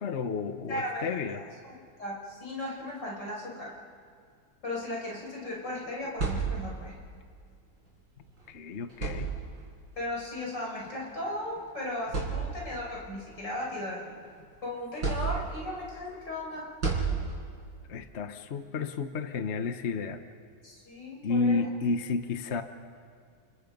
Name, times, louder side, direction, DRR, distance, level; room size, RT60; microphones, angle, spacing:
voice 1, 0.0-1.4 8.5-9.3 17.9-20.2 21.2-22.6, left 4 dB, 45° left, 8 dB, 1.1 m, -31 dB
voice 2, 0.7-1.0 2.0-3.7 4.6-7.0 10.0-14.0 14.6-16.7 20.6-21.6, left 1 dB, 70° left, -3 dB, 6.4 m, -36 dB
sound 1, 5.9-7.0 8.3-8.4 8.9-9.8 10.9-11.0 11.6-11.7 12.1-12.9 13.4-14.4 15.0-15.8 16.8-17.7, right 5 dB, 85° right, 5.4 m, -32 dB
29.5 x 29.5 x 5.3 m, 2.1 s
omnidirectional pair, 2.0 m